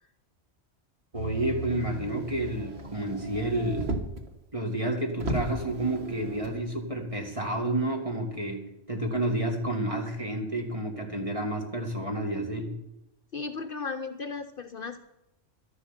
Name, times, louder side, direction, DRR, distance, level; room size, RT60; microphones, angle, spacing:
voice 1, 1.1-3.9 4.5-12.8, right 1 dB, 30° right, 2 dB, 2.1 m, -30 dB
Motor vehicle (road), 1.1-4.3 4.8-4.9 5.2-6.6 7.4-7.5, right 2 dB, 60° right, 1.7 m, -35 dB
voice 2, 13.3-15.0, left 4 dB, 55° left, 9 dB, 0.8 m, -35 dB
12.5 x 11.0 x 5.8 m, 0.91 s
omnidirectional pair, 1.2 m